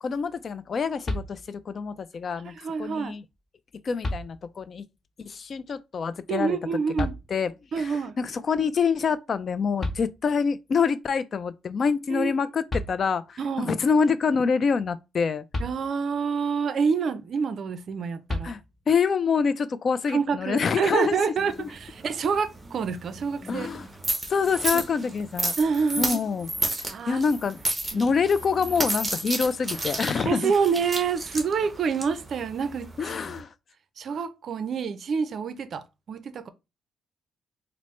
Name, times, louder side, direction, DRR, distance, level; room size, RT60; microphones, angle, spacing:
voice 1, 0.0-2.5 2.8-3.2 3.8-4.8 5.3-6.6 7.0-7.5 7.8-15.4 18.4-18.6 18.9-21.2 21.6-21.7 23.5-23.9 24.3-25.6 26.0-26.5 27.1-27.6 27.9-30.5 33.0-33.5, left 5 dB, 45° left, 0.3 m, -26 dB
sound 1, 1.0-1.8 3.3-3.4 4.0-4.8 7.0-7.7 9.5-9.6 9.8-10.6 12.3-12.4 12.7-13.4 15.5-16.3 18.3-19.0, left 1 dB, 30° left, 0.8 m, -34 dB
voice 2, 2.4-3.1 6.3-7.1 7.7-8.2 12.1-12.3 13.4-13.8 15.6-18.5 20.1-23.7 24.7-24.8 25.6-26.2 26.9-27.3 27.9-28.1 30.2-33.2 34.0-36.5, right 5 dB, 60° right, 0.4 m, -27 dB
sound 2, 21.4-33.4, right 2 dB, 15° right, 1.0 m, -32 dB
4.3 x 2.0 x 3.1 m
cardioid pair, 90°, 0 cm